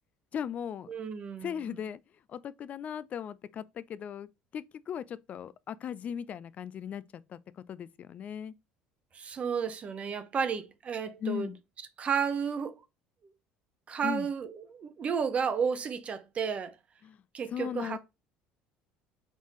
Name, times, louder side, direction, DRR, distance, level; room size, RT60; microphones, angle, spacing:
voice 1, 0.3-0.9 1.4-2.0 2.3-7.0 7.3-7.4 7.7-8.5 11.2-11.6 14.0-14.3 17.0-17.2 17.5-18.0, left 8 dB, 40° left, 0.4 m, -37 dB
voice 2, 0.9-1.8 9.1-11.5 12.0-12.7 13.9-16.7 17.3-18.0, right 6 dB, 35° right, 0.7 m, -32 dB
4.0 x 3.6 x 3.0 m
supercardioid pair, 110°, 4 cm